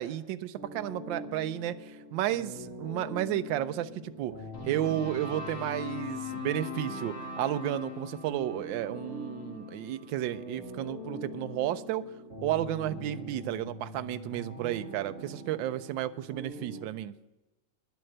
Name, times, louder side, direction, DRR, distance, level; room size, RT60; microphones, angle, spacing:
voice 1, 0.0-4.3 4.7-12.0 12.4-17.1, right 13 dB, 80° right, 12 dB, 1.3 m, -32 dB
sound 1, 0.6-16.8, equal, 35° right, 2.4 m, -44 dB
sound 2, 4.5-10.8, left 5 dB, 55° left, 2.4 m, -41 dB
10.5 x 7.7 x 7.7 m, 1.0 s
omnidirectional pair, 2.2 m